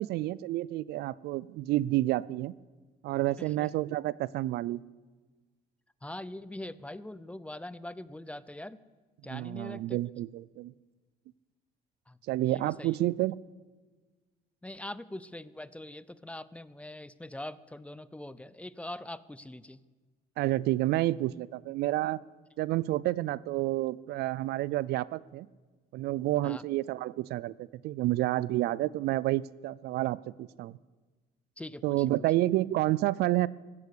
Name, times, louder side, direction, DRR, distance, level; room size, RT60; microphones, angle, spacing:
voice 1, 0.0-2.5 3.0-4.8 9.3-10.7 12.3-13.4 20.4-22.2 22.6-25.5 25.9-27.5 27.8-30.8 31.8-33.5, right 16 dB, 75° right, 21 dB, 0.4 m, -29 dB
voice 2, 3.4-3.7 6.0-8.8 9.2-10.0 12.1-13.0 14.6-19.8 26.4-26.6 31.6-32.1, left 1 dB, 5° left, 17 dB, 0.5 m, -43 dB
15.5 x 9.6 x 8.4 m, 1.3 s
cardioid pair, 110°, 17 cm